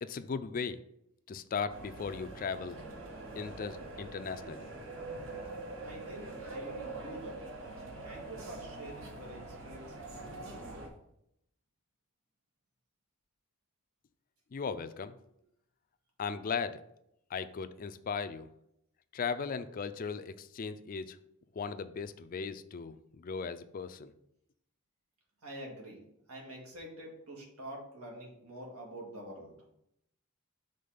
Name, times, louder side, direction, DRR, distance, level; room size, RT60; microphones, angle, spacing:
voice 1, 0.0-0.8 1.3-2.8 3.4-4.6 14.5-15.2 16.2-16.8 17.3-18.5 19.1-21.2 21.6-24.1, left 5 dB, 40° left, 11 dB, 0.3 m, -37 dB
sound 1, 1.7-10.9, right 2 dB, 60° right, 1.0 m, -44 dB
voice 2, 5.8-7.4 8.0-10.7 25.4-26.0 26.3-29.6, right 1 dB, 90° right, -1 dB, 1.8 m, -47 dB
5.5 x 3.7 x 5.1 m, 0.77 s
head